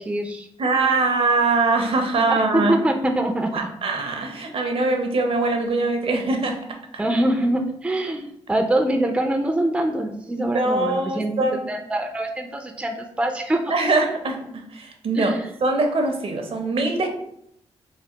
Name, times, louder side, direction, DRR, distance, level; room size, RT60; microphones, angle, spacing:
voice 1, 0.0-0.5 2.5-3.5 7.0-11.3 11.7-13.6 15.2-15.4, right 1 dB, 10° right, 4 dB, 0.4 m, -24 dB
voice 2, 0.6-2.7 3.5-7.0 10.4-11.7 13.7-17.1, right 3 dB, 55° right, 3 dB, 0.6 m, -23 dB
3.3 x 2.1 x 2.8 m, 0.74 s
supercardioid pair, 50°, 11 cm